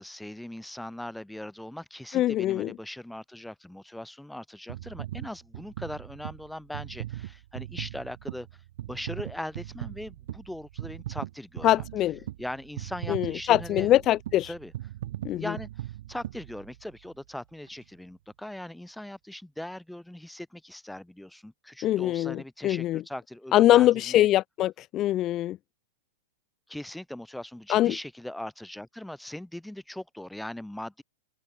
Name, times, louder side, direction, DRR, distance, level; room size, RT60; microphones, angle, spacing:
voice 1, 0.0-8.5 8.9-11.8 12.4-13.9 14.4-14.7 15.4-24.3 26.7-31.0, left 1 dB, 5° left, 6.0 m, -40 dB
voice 2, 2.1-2.7 11.6-12.2 13.1-14.5 15.2-15.5 21.8-23.0 23.5-25.6 27.7-27.9, left 14 dB, 35° left, 1.7 m, -23 dB
sound 1, 4.7-17.1 17.7-17.8, right 14 dB, 55° right, 3.7 m, -39 dB
figure-of-eight pair, 95°, 0 cm